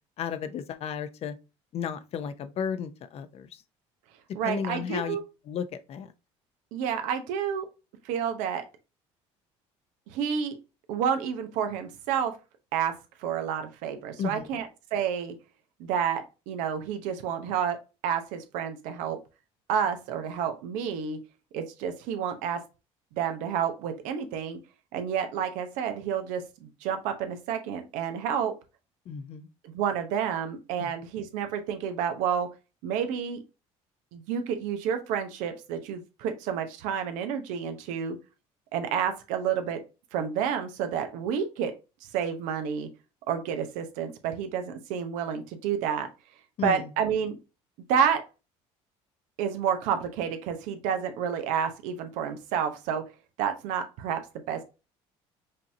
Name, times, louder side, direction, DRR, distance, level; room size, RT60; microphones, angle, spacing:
voice 1, 0.2-1.4 1.7-3.6 4.4-5.2 5.5-6.1 14.2-14.5 29.1-29.5 30.8-30.9 46.6-46.9, left 7 dB, 55° left, 0.6 m, -33 dB
voice 2, 4.3-5.2 6.7-7.7 8.0-8.6 10.1-10.6 10.9-12.3 12.7-12.9 13.2-15.3 15.8-17.8 18.0-19.2 19.7-21.2 21.5-22.6 23.2-24.6 24.9-28.5 29.6-32.5 32.8-33.4 34.1-38.2 38.7-39.8 40.1-41.7 42.1-42.9 43.3-46.1 46.6-47.4 47.9-48.2 49.4-53.0 53.4-54.2 54.5-54.6, right 8 dB, 80° right, 0.8 m, -29 dB
5.2 x 2.8 x 2.7 m
supercardioid pair, 90°, 13 cm